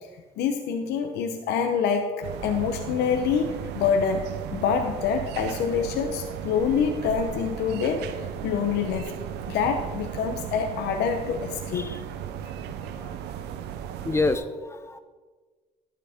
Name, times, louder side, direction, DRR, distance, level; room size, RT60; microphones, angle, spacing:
voice 1, 0.4-4.3 4.5-9.2 9.5-11.9, left 6 dB, 80° left, 5 dB, 1.0 m, -26 dB
sound 1, 2.2-14.4, right 9 dB, 80° right, 0.8 m, -36 dB
voice 2, 12.8-13.2 13.5-13.6 14.0-15.0, left 3 dB, 15° left, 10 dB, 0.7 m, -29 dB
12.0 x 9.9 x 3.7 m, 1.4 s
cardioid pair, 110°, 17 cm